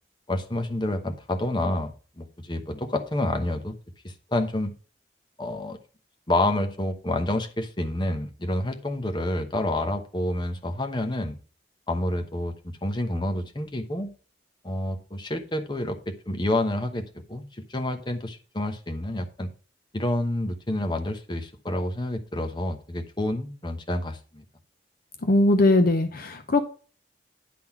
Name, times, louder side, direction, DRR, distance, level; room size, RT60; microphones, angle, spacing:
voice 1, 0.3-1.9 2.2-3.7 4.0-4.7 5.4-5.8 6.3-11.4 11.9-12.5 12.8-14.1 14.6-17.0 17.3-19.5 19.9-24.4, left 1 dB, 25° left, 0.9 m, -28 dB
voice 2, 25.2-26.6, left 2 dB, 50° left, 0.7 m, -20 dB
10.5 x 3.8 x 5.8 m
head